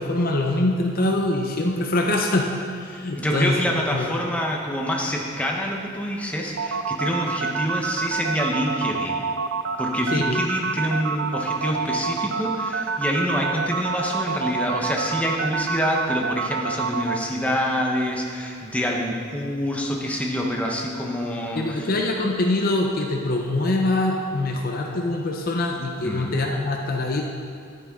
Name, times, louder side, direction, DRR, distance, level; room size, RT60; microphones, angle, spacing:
voice 1, 0.0-2.5 2.8-4.1 10.1-10.4 21.6-27.2, left 2 dB, 45° left, 1 dB, 0.7 m, -24 dB
voice 2, 3.1-9.2 9.8-21.9 26.0-26.3, equal, 5° left, -1 dB, 1.0 m, -26 dB
sound 1, 6.6-17.2, right 5 dB, 60° right, 0.4 m, -27 dB
11.0 x 9.4 x 3.7 m, 2.4 s
head